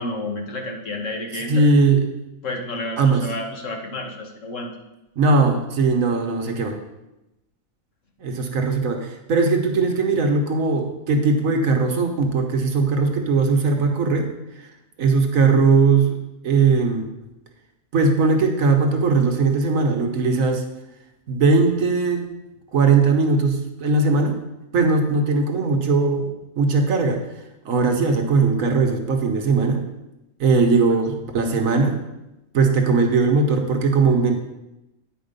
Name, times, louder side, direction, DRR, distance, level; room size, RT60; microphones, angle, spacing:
voice 1, 0.0-1.7 2.4-4.7 30.5-31.0, left 2 dB, 55° left, 1 dB, 1.5 m, -31 dB
voice 2, 1.5-2.0 3.0-3.2 5.2-6.8 8.2-14.3 15.0-16.2 16.4-17.0 17.9-20.6 21.3-22.2 22.7-24.4 24.7-27.2 27.6-29.8 30.4-32.0 32.5-34.4, right 4 dB, 65° right, 4 dB, 1.3 m, -19 dB
9.5 x 4.9 x 5.2 m, 0.95 s
omnidirectional pair, 1.6 m